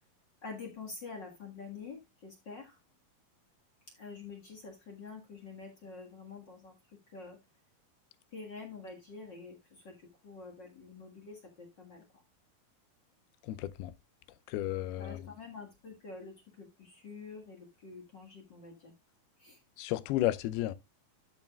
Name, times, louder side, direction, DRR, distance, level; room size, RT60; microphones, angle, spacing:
voice 1, 0.4-2.8 3.9-7.4 8.3-12.2 15.0-18.9 19.4-19.6, left 4 dB, 40° left, 1.7 m, -47 dB
voice 2, 13.5-13.9 14.5-15.2 19.8-20.7, left 14 dB, 90° left, 2.6 m, -32 dB
13.0 x 6.2 x 2.3 m
omnidirectional pair, 4.3 m